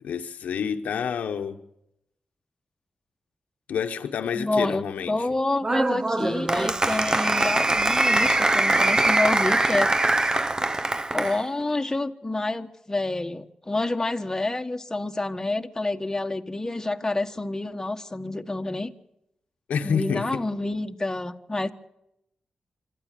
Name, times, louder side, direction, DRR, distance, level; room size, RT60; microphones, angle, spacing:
voice 1, 0.0-1.6 3.7-5.3 19.7-20.4, left 7 dB, 90° left, 1.1 m, -28 dB
voice 2, 4.3-9.9 11.1-18.9 19.8-21.7, left 2 dB, 20° left, 1.4 m, -28 dB
Applause, 5.6-11.4, right 2 dB, 30° right, 0.8 m, -22 dB
26.0 x 13.0 x 9.1 m
cardioid pair, 55°, 3 cm